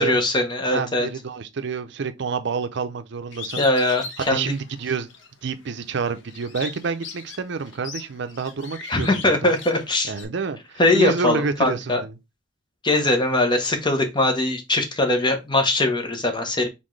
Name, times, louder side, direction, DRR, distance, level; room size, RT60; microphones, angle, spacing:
voice 1, 0.0-1.1 3.6-4.4 8.9-10.1 10.8-12.0 12.8-16.7, left 2 dB, 25° left, 0.9 m, -21 dB
voice 2, 0.7-3.6 4.2-5.2 5.4-9.5 10.0-12.1, right 5 dB, 65° right, 0.5 m, -28 dB
Bird, 3.3-5.3 5.7-10.2, left 6 dB, 70° left, 0.9 m, -38 dB
4.3 x 3.5 x 3.1 m
head